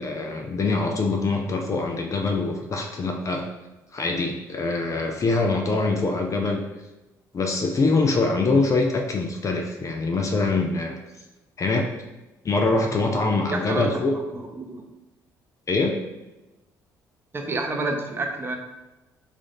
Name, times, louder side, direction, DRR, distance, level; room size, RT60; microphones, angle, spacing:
voice 1, 0.0-3.5 3.9-6.7 7.3-11.0 11.6-11.9 12.4-14.1 15.7-16.0, left 3 dB, 40° left, 3 dB, 0.5 m, -24 dB
voice 2, 13.5-14.0 14.3-14.8 17.3-18.6, right 2 dB, 25° right, 3 dB, 0.7 m, -29 dB
3.4 x 2.5 x 3.7 m, 1.1 s
hypercardioid pair, 60°, 9 cm